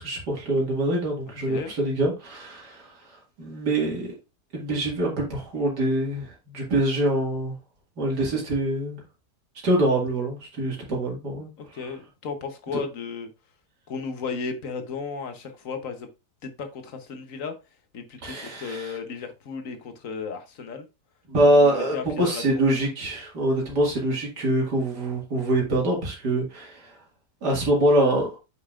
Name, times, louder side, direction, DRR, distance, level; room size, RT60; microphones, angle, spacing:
voice 1, 0.0-4.2 4.5-7.6 8.0-9.0 9.6-11.5 12.7-12.8 18.2-18.9 21.3-27.0 27.4-28.3, right 1 dB, 80° right, 2.8 m, -24 dB
voice 2, 11.6-13.3 13.9-16.1 16.4-17.5 17.9-20.9 21.4-22.7, left 5 dB, 55° left, 1.4 m, -35 dB
8.3 x 5.4 x 2.5 m
omnidirectional pair, 1.7 m